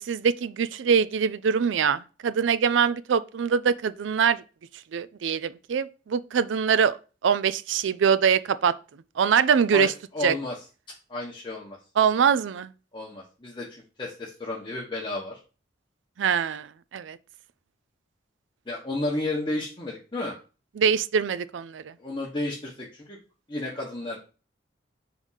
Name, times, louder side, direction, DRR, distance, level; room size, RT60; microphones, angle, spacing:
voice 1, 0.1-4.4 4.9-7.0 7.2-8.7 9.2-9.9 10.2-10.3 12.0-12.7 16.2-17.2 20.8-21.9, right 7 dB, 80° right, 0.4 m, -23 dB
voice 2, 9.7-10.6 11.1-11.8 12.9-15.4 18.7-20.3 22.0-23.2 23.5-24.2, left 2 dB, 25° left, 1.1 m, -32 dB
4.8 x 3.5 x 5.6 m
head